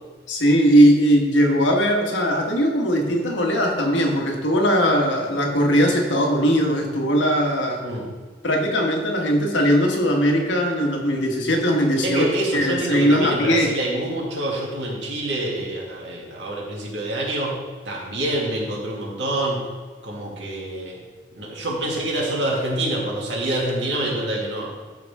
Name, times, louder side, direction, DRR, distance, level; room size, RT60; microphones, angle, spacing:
voice 1, 0.3-7.8 8.4-12.3 12.5-13.7, equal, 90° left, 1 dB, 1.6 m, -19 dB
voice 2, 7.8-8.1 12.0-19.7 20.0-21.0 21.3-24.7, right 1 dB, 75° right, -3 dB, 2.3 m, -26 dB
13.5 x 4.9 x 3.6 m, 1.4 s
head